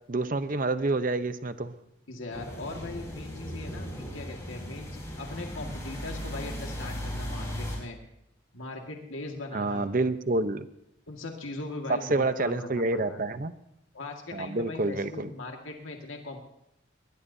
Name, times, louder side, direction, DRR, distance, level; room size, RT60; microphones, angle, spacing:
voice 1, 0.1-1.7 9.5-10.6 12.1-13.5 14.3-15.3, right 2 dB, 45° right, 11 dB, 0.8 m, -28 dB
voice 2, 2.1-8.0 8.5-9.9 11.1-13.2 13.9-16.4, left 2 dB, 90° left, 1 dB, 1.9 m, -39 dB
sound 1, 2.3-7.8, equal, 15° left, 5.5 m, -37 dB
21.0 x 20.0 x 2.7 m, 0.81 s
head